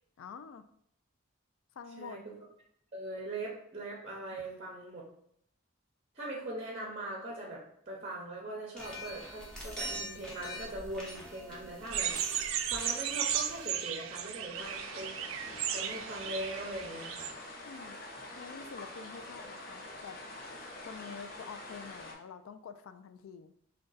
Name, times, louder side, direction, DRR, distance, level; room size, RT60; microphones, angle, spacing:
voice 1, 0.2-0.6 1.8-2.2 17.6-18.0 18.4-20.2 20.9-23.5, left 6 dB, 80° left, 10 dB, 0.3 m, -47 dB
voice 2, 2.9-5.0 6.2-15.2 15.4-17.3, right 1 dB, 30° right, -2 dB, 0.6 m, -41 dB
sound 1, 8.8-13.7, equal, 5° left, 0.8 m, -44 dB
sound 2, 11.9-17.3, right 9 dB, 75° right, 0.3 m, -35 dB
sound 3, 14.5-22.1, left 2 dB, 45° left, 0.8 m, -46 dB
3.7 x 2.2 x 3.9 m, 0.68 s
head